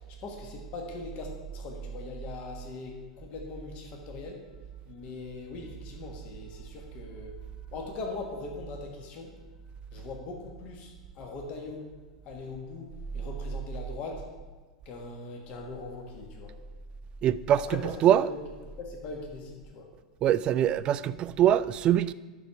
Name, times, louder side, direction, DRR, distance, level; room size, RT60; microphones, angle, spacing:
voice 1, 0.2-4.4 4.9-7.3 7.7-9.3 9.9-11.9 12.3-14.3 14.9-16.5 17.7-19.9, left 3 dB, 40° left, 1.7 m, -41 dB
voice 2, 17.2-18.3 20.2-22.1, right 10 dB, 30° right, 0.3 m, -23 dB
10.5 x 6.0 x 5.6 m
figure-of-eight pair, 90°, 3 cm